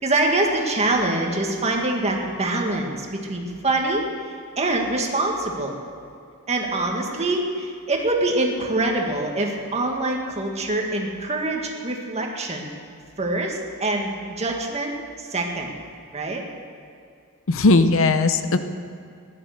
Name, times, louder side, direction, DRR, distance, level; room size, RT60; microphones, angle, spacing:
voice 1, 0.0-4.0 4.6-5.8 6.5-12.7 13.2-14.9 15.2-15.8 16.1-16.4, right 2 dB, 30° right, 1 dB, 1.9 m, -24 dB
voice 2, 17.5-18.6, left 3 dB, 65° left, 10 dB, 0.8 m, -17 dB
16.0 x 11.0 x 6.7 m, 2.3 s
head